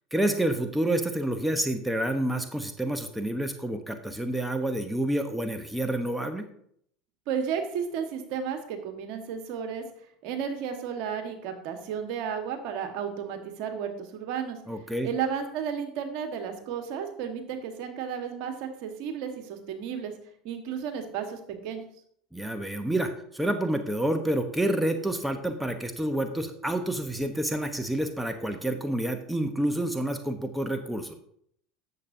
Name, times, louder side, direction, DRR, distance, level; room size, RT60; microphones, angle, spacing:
voice 1, 0.1-6.5 14.7-15.1 22.3-31.1, right 1 dB, 5° right, 7 dB, 0.9 m, -28 dB
voice 2, 7.3-9.8 10.2-14.6 15.0-20.1 20.4-21.9, right 7 dB, 65° right, 6 dB, 1.4 m, -33 dB
10.5 x 7.3 x 2.7 m, 0.67 s
hypercardioid pair, 80°, 0 cm